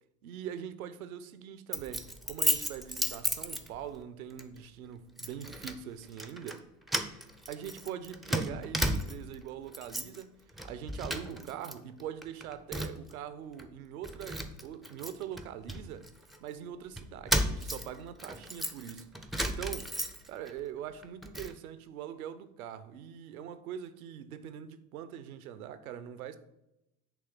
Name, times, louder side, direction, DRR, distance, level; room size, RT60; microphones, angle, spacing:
voice 1, 0.2-6.6 7.5-10.3 10.6-16.1 16.4-20.0 20.3-26.4, right 9 dB, 70° right, 0.7 m, -42 dB
Keys jangling, 1.7-4.0 4.4-4.6 5.2-5.8 6.1-6.6 6.9-9.4 9.7-10.2 10.5-11.7 12.0-13.1 13.6-13.7 14.0-16.4 17.0-20.5 20.9-21.5, equal, ahead, 0.5 m, -34 dB
8.4 x 3.3 x 6.0 m
figure-of-eight pair, 70°, 44 cm